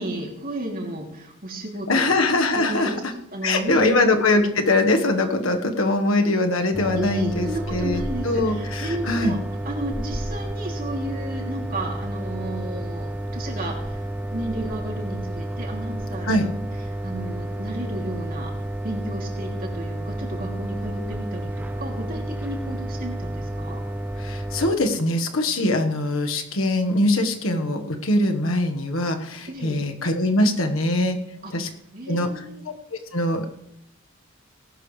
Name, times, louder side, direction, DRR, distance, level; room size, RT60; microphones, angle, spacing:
voice 1, 0.0-2.1 2.5-3.0 3.3-4.5 6.9-9.4 9.6-14.0 14.3-16.5 17.0-18.5 18.8-21.5 21.8-23.8 29.5-29.8 31.4-31.5 31.9-32.6, right 1 dB, 45° right, 0 dB, 2.9 m, -33 dB
voice 2, 1.9-3.1 3.4-9.4 16.2-16.5 24.2-31.2 31.5-31.7 32.1-32.4 33.1-33.5, left 2 dB, 80° left, 4 dB, 1.5 m, -22 dB
sound 1, 6.7-24.8, right 1 dB, 10° right, 0.6 m, -31 dB
18.5 x 12.0 x 3.3 m, 0.79 s
head